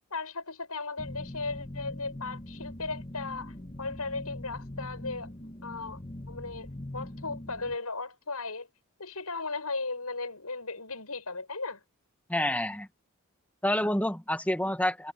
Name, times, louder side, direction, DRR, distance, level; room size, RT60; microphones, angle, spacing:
voice 1, 0.1-5.3 5.6-6.0 6.3-8.7 9.0-11.8, left 3 dB, 85° left, 7.2 m, -36 dB
sound 1, 1.0-7.8, left 1 dB, 25° left, 1.3 m, -42 dB
voice 2, 12.3-12.9 13.6-15.1, left 1 dB, 5° left, 1.6 m, -28 dB
head